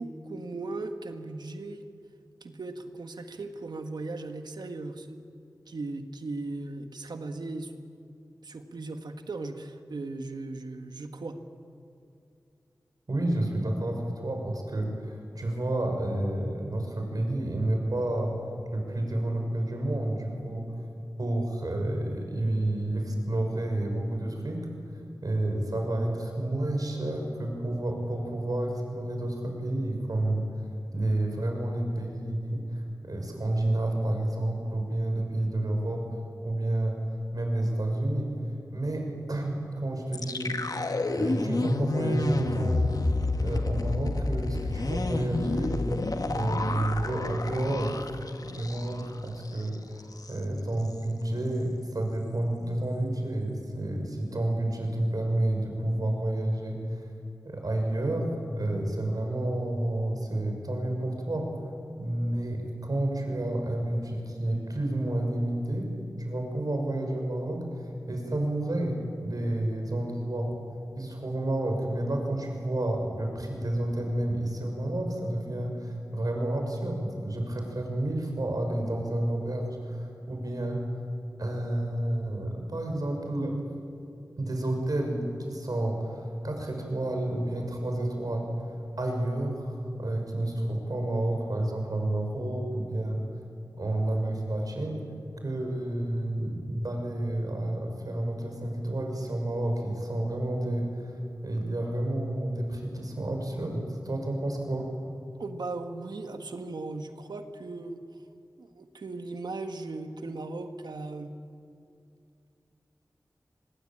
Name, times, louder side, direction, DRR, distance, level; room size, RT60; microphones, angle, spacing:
voice 1, 0.0-1.8 2.4-5.3 5.7-7.7 8.4-11.4 105.4-108.0 108.6-111.3, right 3 dB, 90° right, 7 dB, 1.6 m, -37 dB
voice 2, 13.1-18.4 18.7-20.7 21.2-24.7 25.2-30.4 30.9-36.1 36.4-37.0 37.3-38.3 38.7-40.8 41.1-43.0 43.4-45.8 46.3-49.8 50.3-57.0 57.4-58.3 58.6-61.5 62.0-65.9 66.2-70.5 71.0-80.8 81.4-83.6 84.4-88.4 89.0-93.2 93.8-95.0 95.4-101.2 101.4-104.9, right 1 dB, 60° right, 2 dB, 6.1 m, -30 dB
sound 1, 40.1-49.2 49.5-49.6 50.0-50.4, left 2 dB, 60° left, 1.6 m, -29 dB
24.5 x 21.5 x 8.8 m, 2.5 s
wide cardioid pair, 60°, 7 cm